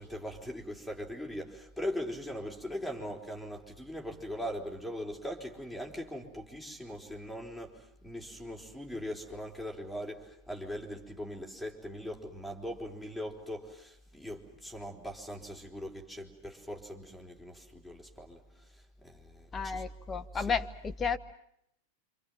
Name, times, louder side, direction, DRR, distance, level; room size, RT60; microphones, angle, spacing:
voice 1, 0.0-19.8 20.3-20.5, equal, ahead, 0 dB, 4.3 m, -40 dB
voice 2, 19.5-21.2, left 5 dB, 20° left, 8 dB, 1.5 m, -32 dB
27.5 x 26.5 x 7.4 m, 0.75 s
figure-of-eight pair, 90°, 0 cm